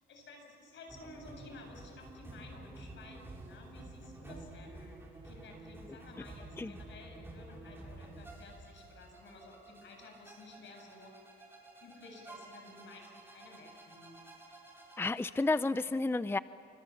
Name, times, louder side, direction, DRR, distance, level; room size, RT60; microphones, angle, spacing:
voice 1, 0.0-11.2 11.8-14.2, left 3 dB, 70° left, 3 dB, 7.7 m, -54 dB
sound 1, 0.9-15.1, right 2 dB, 10° right, 6.9 m, -51 dB
voice 2, 15.0-16.4, left 3 dB, 10° left, 14 dB, 0.5 m, -31 dB
29.5 x 25.0 x 7.3 m, 2.3 s
cardioid pair, 90°, 20 cm